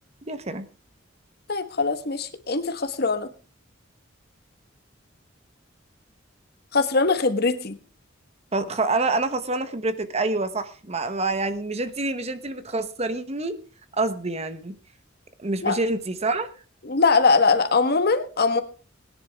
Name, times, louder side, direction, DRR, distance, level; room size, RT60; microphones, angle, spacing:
voice 1, 0.3-0.7 8.5-13.6 14.0-14.8 15.4-16.5, right 2 dB, 35° right, 11 dB, 1.1 m, -27 dB
voice 2, 1.5-3.3 6.7-7.8 15.6-15.8 16.8-18.6, left 4 dB, 55° left, 9 dB, 1.3 m, -21 dB
20.5 x 10.5 x 3.5 m, 0.36 s
head